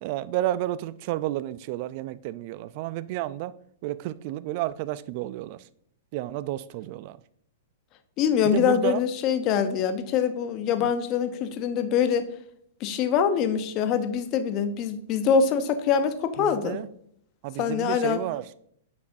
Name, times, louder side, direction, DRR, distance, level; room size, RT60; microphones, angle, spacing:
voice 1, 0.0-3.5 3.8-5.6 6.1-7.2 8.4-9.0 10.8-10.9 16.4-16.9 17.4-18.4, right 14 dB, 50° right, 0.4 m, -31 dB
voice 2, 8.2-12.3 12.8-16.8 17.6-18.2, left 7 dB, 40° left, 0.8 m, -24 dB
9.4 x 6.1 x 2.6 m
hypercardioid pair, 110°, 0 cm